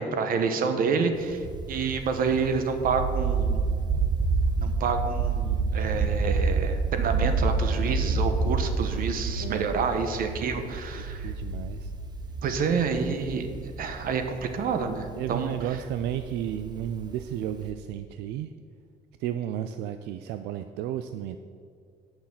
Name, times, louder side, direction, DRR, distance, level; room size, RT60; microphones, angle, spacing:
voice 1, 0.0-3.6 4.6-11.3 12.4-13.5 13.8-15.5, right 5 dB, 55° right, 7 dB, 1.1 m, -28 dB
sound 1, 1.1-17.7, right 4 dB, 25° right, 0.9 m, -29 dB
voice 2, 9.4-9.7 11.0-11.9 15.2-18.5 19.2-21.4, right 11 dB, 85° right, 9 dB, 0.4 m, -33 dB
8.9 x 5.9 x 7.1 m, 2.1 s
cardioid pair, 110°, 17 cm